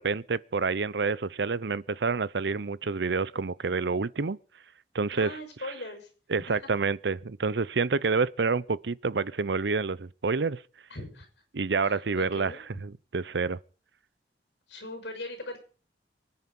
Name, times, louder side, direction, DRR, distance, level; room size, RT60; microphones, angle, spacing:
voice 1, 0.0-4.4 4.9-5.4 6.3-10.6 11.5-12.5 12.8-13.6, right 4 dB, 70° right, 0.7 m, -28 dB
voice 2, 5.1-6.1 6.5-6.6 10.9-11.3 11.8-12.6 14.7-15.6, left 2 dB, 75° left, 5.8 m, -40 dB
24.0 x 9.9 x 5.5 m
head